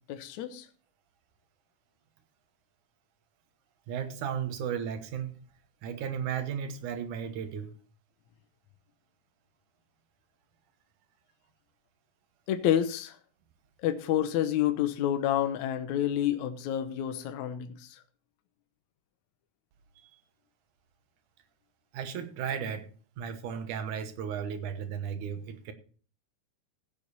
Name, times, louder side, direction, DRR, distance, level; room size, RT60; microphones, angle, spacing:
voice 1, 0.1-0.7 12.5-13.2 13.8-18.0, left 11 dB, 70° left, 2.1 m, -29 dB
voice 2, 3.9-5.4 5.8-7.7 20.0-20.2 21.9-22.9 23.2-25.7, right 8 dB, 75° right, 2.6 m, -35 dB
15.5 x 7.0 x 4.2 m
omnidirectional pair, 3.7 m